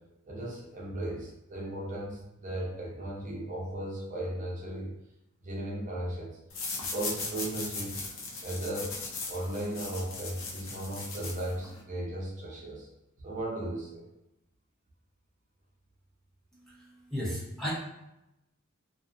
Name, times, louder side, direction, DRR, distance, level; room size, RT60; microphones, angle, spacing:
voice 1, 0.2-4.9 5.4-6.4 6.8-8.0 8.4-9.0 9.3-12.9 13.2-14.0, right 1 dB, 35° right, -4 dB, 0.6 m, -36 dB
sound 1, 6.5-11.8, left 3 dB, 70° left, 0.6 m, -38 dB
voice 2, 16.5-17.7, equal, ahead, -7 dB, 0.6 m, -36 dB
2.5 x 2.4 x 2.4 m, 0.89 s
head